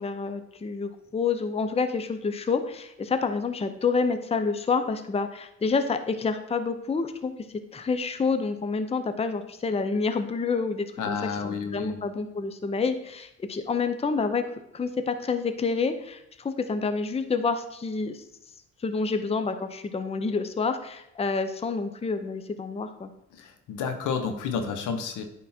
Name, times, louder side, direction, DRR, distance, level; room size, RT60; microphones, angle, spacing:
voice 1, 0.0-7.3 7.7-11.2 11.4-14.4 14.7-18.2 18.8-23.1, left 4 dB, 20° left, 9 dB, 0.6 m, -28 dB
voice 2, 11.0-12.0 23.4-25.2, left 6 dB, 85° left, 7 dB, 1.0 m, -30 dB
9.7 x 3.7 x 4.3 m, 0.79 s
cardioid pair, 90°, 30 cm